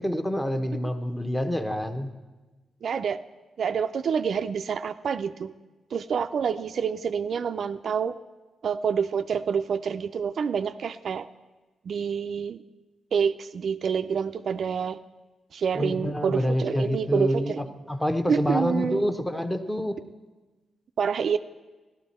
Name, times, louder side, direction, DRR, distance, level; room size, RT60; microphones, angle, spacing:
voice 1, 0.0-2.1 15.8-20.0, equal, 10° left, 7 dB, 0.8 m, -27 dB
voice 2, 2.8-3.2 3.6-5.5 5.9-8.2 8.6-11.3 11.8-12.6 13.1-15.0 15.5-17.6 18.3-19.0 21.0-21.4, right 6 dB, 60° right, 10 dB, 0.3 m, -27 dB
15.0 x 12.0 x 4.2 m, 1.2 s
cardioid pair, 115°, 0 cm